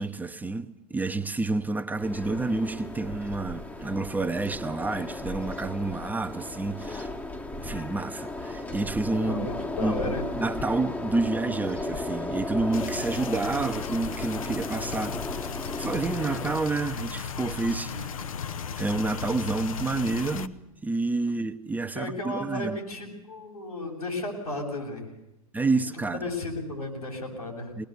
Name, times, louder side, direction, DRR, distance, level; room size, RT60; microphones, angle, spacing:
voice 1, 0.0-7.1 7.6-9.5 9.8-15.5 15.8-18.1 18.8-22.8 25.5-26.2 27.8-27.9, right 3 dB, 10° right, 1.0 m, -29 dB
sound 1, 2.0-16.6, left 2 dB, 10° left, 1.2 m, -35 dB
voice 2, 9.2-10.3 17.9-18.3 21.9-25.1 25.7-25.8 26.1-27.7, left 2 dB, 85° left, 7.5 m, -34 dB
sound 2, 12.7-20.5, left 6 dB, 65° left, 1.0 m, -35 dB
22.0 x 19.5 x 8.3 m
figure-of-eight pair, 100°, 19 cm